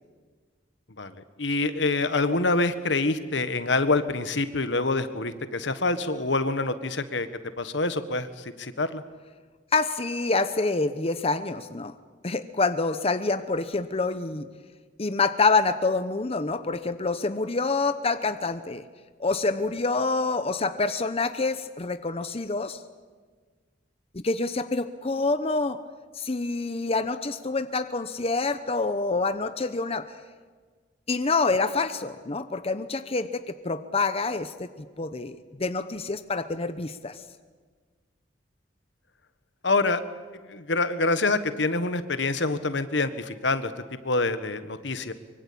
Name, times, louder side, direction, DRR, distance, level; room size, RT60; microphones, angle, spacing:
voice 1, 1.4-7.3 7.6-9.0 39.6-40.0 40.5-43.7 44.0-45.1, left 3 dB, 75° left, 11 dB, 1.5 m, -26 dB
voice 2, 9.7-11.9 12.2-14.5 15.0-18.8 19.2-22.8 24.1-25.8 26.2-30.1 31.1-34.7 35.0-37.2, left 3 dB, 35° left, 10 dB, 0.9 m, -27 dB
24.5 x 23.5 x 8.7 m, 1.5 s
head